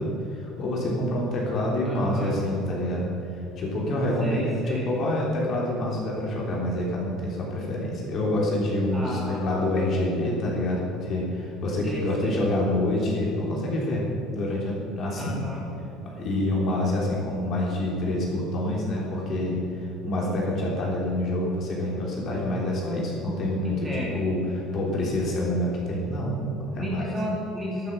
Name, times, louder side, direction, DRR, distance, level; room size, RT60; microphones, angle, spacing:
voice 1, 0.0-15.4 16.0-27.1, left 1 dB, 40° left, -3 dB, 3.4 m, -27 dB
voice 2, 1.8-2.4 4.2-4.9 8.9-9.4 11.8-12.4 15.2-15.7 23.6-24.2 26.7-27.9, left 1 dB, 15° right, -5 dB, 3.3 m, -33 dB
11.5 x 10.0 x 6.9 m, 3.0 s
cardioid pair, 155°, 0 cm